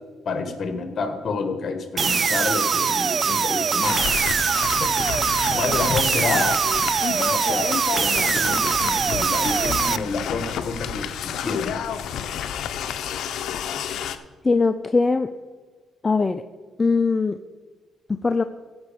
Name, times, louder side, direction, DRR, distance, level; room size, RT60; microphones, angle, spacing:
voice 1, 0.2-4.0 4.8-6.6 7.0-7.6 7.9-11.8, left 4 dB, 50° left, 7 dB, 1.6 m, -29 dB
sound 1, 2.0-10.0, right 6 dB, 45° right, 0.3 m, -22 dB
sound 2, 3.8-14.2, left 9 dB, 75° left, 0.6 m, -30 dB
voice 2, 14.4-15.3 16.0-16.4 16.8-17.4 18.2-18.4, left 4 dB, 25° left, 9 dB, 0.4 m, -20 dB
15.5 x 5.5 x 5.2 m, 1.4 s
cardioid pair, 90°, 0 cm